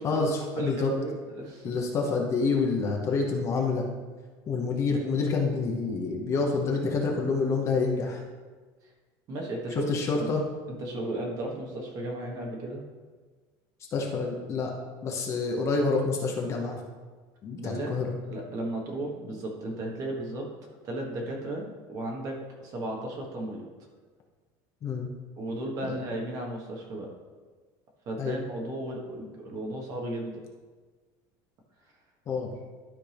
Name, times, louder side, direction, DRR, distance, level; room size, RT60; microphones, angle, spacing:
voice 1, 0.0-0.9 1.6-3.9 4.5-8.2 9.7-10.4 13.9-14.7 15.0-16.8 17.4-18.2 24.8-25.1 25.8-26.0 28.2-28.4 32.3-32.5, left 4 dB, 30° left, 0 dB, 0.9 m, -27 dB
voice 2, 0.6-1.7 9.3-9.9 10.2-10.3 10.8-12.8 17.6-17.9 18.3-20.5 20.8-23.7 25.4-27.1 28.0-30.4, right 1 dB, 35° right, 0 dB, 1.4 m, -35 dB
12.0 x 4.4 x 3.5 m, 1.4 s
cardioid pair, 170°, 10 cm